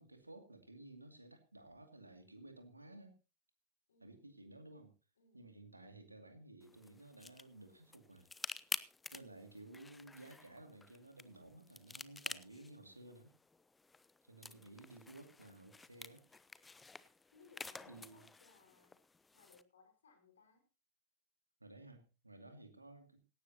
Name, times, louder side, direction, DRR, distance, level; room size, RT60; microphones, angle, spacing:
voice 1, 0.0-3.1 4.0-4.9 5.3-8.3 9.1-13.3 14.2-16.2 17.9-18.3 21.6-23.2, right 2 dB, 85° right, 6 dB, 2.4 m, -56 dB
voice 2, 3.9-4.3 5.2-5.4 14.4-14.9 17.3-19.0 19.3-20.7, left 5 dB, 70° left, 3 dB, 4.9 m, -66 dB
sound 1, 6.6-19.6, left 3 dB, 10° left, 0.8 m, -50 dB
17.5 x 16.0 x 2.9 m, 0.32 s
figure-of-eight pair, 90°, 0 cm